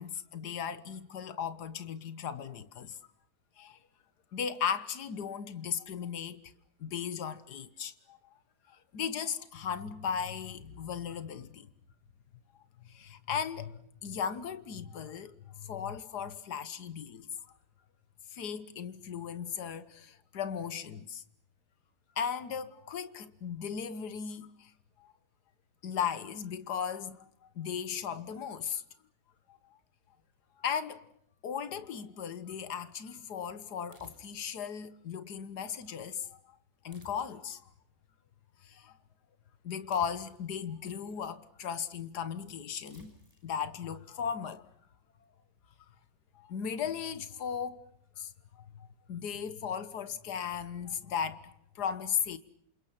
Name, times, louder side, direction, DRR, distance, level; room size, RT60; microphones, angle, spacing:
voice 1, 0.0-3.0 3.6-3.8 4.3-6.4 6.8-8.3 8.7-11.7 12.8-17.3 18.3-21.2 22.2-24.7 25.0-25.1 25.8-28.8 29.5-29.8 30.6-31.0 31.4-36.6 36.8-37.6 38.6-38.9 39.6-43.1 43.4-44.6 46.3-47.8 48.2-52.4, left 7 dB, 85° left, 1.8 m, -37 dB
sound 1, 33.9-34.6 36.9-37.7 39.9-40.6 42.9-43.5, equal, 10° right, 5.5 m, -57 dB
28.0 x 28.0 x 5.9 m
omnidirectional pair, 1.7 m